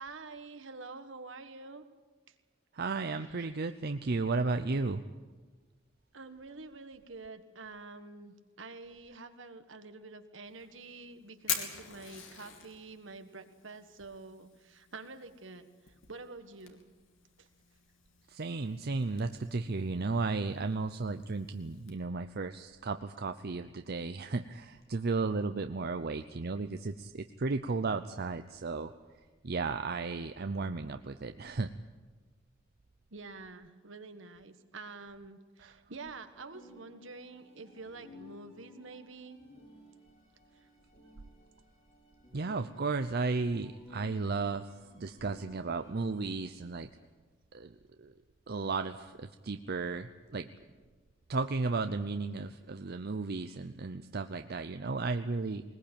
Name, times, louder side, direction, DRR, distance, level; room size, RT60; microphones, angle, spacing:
voice 1, 0.0-1.8 2.3-2.4 3.3-3.6 6.1-16.8 17.4-17.5 33.1-39.4, right 3 dB, 70° right, 8 dB, 1.5 m, -48 dB
voice 2, 2.7-5.0 18.3-28.9 29.4-31.7 35.6-35.7 42.3-46.9 47.5-48.1 48.5-50.5 51.3-55.6, right 3 dB, 55° right, 8 dB, 0.7 m, -34 dB
Fire, 10.4-22.0, left 7 dB, 85° left, 3.0 m, -45 dB
sound 1, 36.5-46.3, left 1 dB, 35° left, 5.2 m, -57 dB
20.5 x 20.5 x 8.9 m, 1.4 s
head